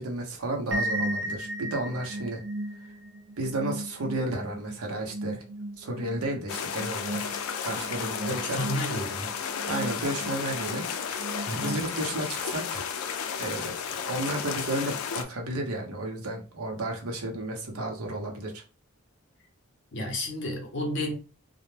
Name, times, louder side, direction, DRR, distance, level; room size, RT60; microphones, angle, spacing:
voice 1, 0.0-2.4 2.8-2.9 3.4-5.4 5.8-7.2 7.6-8.6 9.7-10.8 11.5-12.9 13.4-18.6, right 1 dB, 85° right, 0.7 m, -32 dB
sound 1, 0.7-12.3, right 1 dB, 50° right, 0.4 m, -36 dB
sound 2, 6.5-15.2, left 7 dB, 80° left, 0.4 m, -33 dB
voice 2, 8.3-9.3 11.5-11.8 19.9-21.1, left 1 dB, 50° left, 0.7 m, -32 dB
2.1 x 2.0 x 3.1 m
head